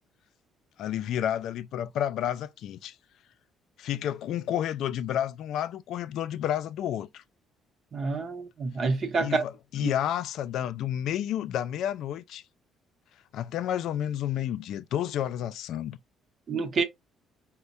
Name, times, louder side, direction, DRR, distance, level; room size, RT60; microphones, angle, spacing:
voice 1, 0.8-3.0 3.8-7.2 9.2-12.4 13.3-16.0, left 10 dB, 70° left, 0.3 m, -30 dB
voice 2, 7.9-9.4 9.8-9.9 16.5-16.8, right 4 dB, 40° right, 0.8 m, -28 dB
4.4 x 2.1 x 2.5 m
cardioid pair, 125°, 0 cm